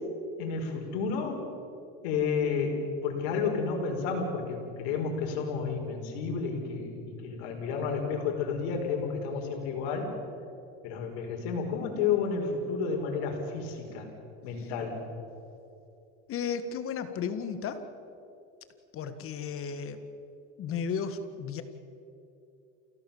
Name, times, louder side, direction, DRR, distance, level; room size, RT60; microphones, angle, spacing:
voice 1, 0.4-1.5 2.0-10.1 10.8-14.1 14.4-15.0, left 5 dB, 70° left, 3 dB, 5.2 m, -31 dB
voice 2, 16.3-17.8 18.9-20.0 20.6-21.6, left 6 dB, 40° left, 10 dB, 1.9 m, -34 dB
29.5 x 17.0 x 7.3 m, 2.7 s
supercardioid pair, 125°, 34 cm